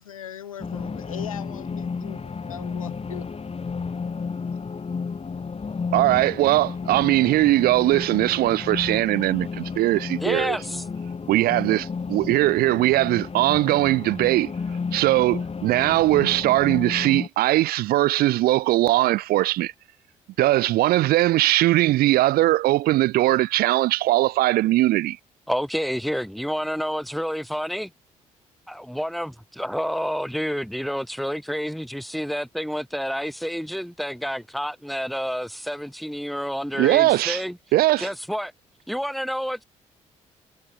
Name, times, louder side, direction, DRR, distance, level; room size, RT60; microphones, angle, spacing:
voice 1, 0.0-3.3, left 10 dB, 90° left, 3.3 m, -39 dB
sound 1, 0.6-17.3, left 5 dB, 35° left, 4.4 m, -32 dB
voice 2, 5.9-10.6 11.3-14.5 14.9-19.7 20.4-25.2 36.8-37.4 37.7-38.1, right 16 dB, 65° right, 0.6 m, -20 dB
voice 3, 10.2-10.8 25.5-27.9 28.7-37.6 38.0-38.5 38.9-39.6, equal, ahead, 3.5 m, -29 dB
hypercardioid pair, 45°, 17 cm